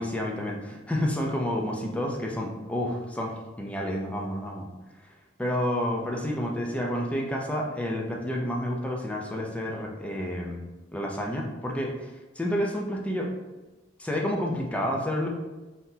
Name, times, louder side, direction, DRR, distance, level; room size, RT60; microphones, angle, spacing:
voice 1, 0.0-4.7 5.4-10.6 10.9-13.3 14.0-15.3, equal, 5° left, -1 dB, 0.4 m, -30 dB
3.8 x 2.8 x 2.7 m, 1.1 s
head